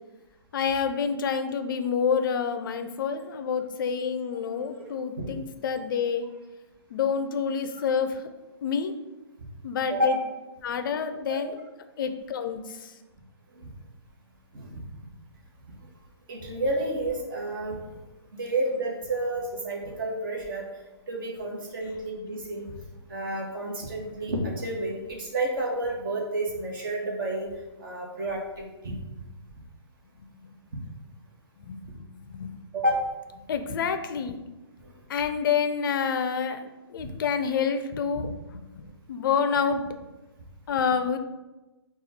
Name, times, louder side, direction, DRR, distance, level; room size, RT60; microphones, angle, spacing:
voice 1, 0.5-6.3 6.9-8.3 8.6-8.9 9.6-10.2 10.6-11.6 12.0-13.0 30.4-30.5 31.6-32.6 33.5-34.4 35.1-38.3 38.7-39.9 40.7-41.2, left 6 dB, 50° left, 8 dB, 0.4 m, -28 dB
voice 2, 16.3-18.0 18.3-20.6 21.1-22.7 23.1-27.5 27.8-29.0 32.7-33.0, right 1 dB, 50° right, -1 dB, 1.1 m, -30 dB
4.0 x 2.3 x 4.2 m, 1.1 s
hypercardioid pair, 150°, 14 cm